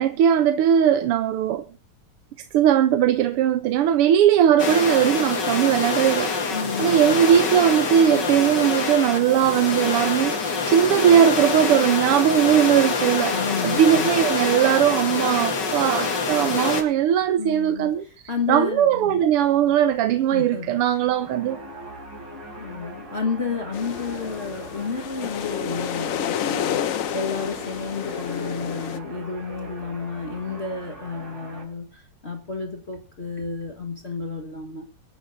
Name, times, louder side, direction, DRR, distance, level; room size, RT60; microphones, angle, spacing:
voice 1, 0.0-1.7 2.5-6.3 6.8-18.1 18.5-21.6, right 10 dB, 90° right, 1.8 m, -19 dB
sound 1, 4.6-16.8, left 4 dB, 55° left, 2.4 m, -25 dB
voice 2, 6.5-7.2 13.3-14.2 17.4-19.2 20.3-20.7 22.6-34.9, left 5 dB, 30° left, 1.6 m, -31 dB
sound 2, 20.6-31.6, right 2 dB, 45° right, 3.8 m, -41 dB
sound 3, 23.7-29.0, left 9 dB, 80° left, 0.7 m, -30 dB
24.5 x 10.0 x 2.7 m
omnidirectional pair, 2.4 m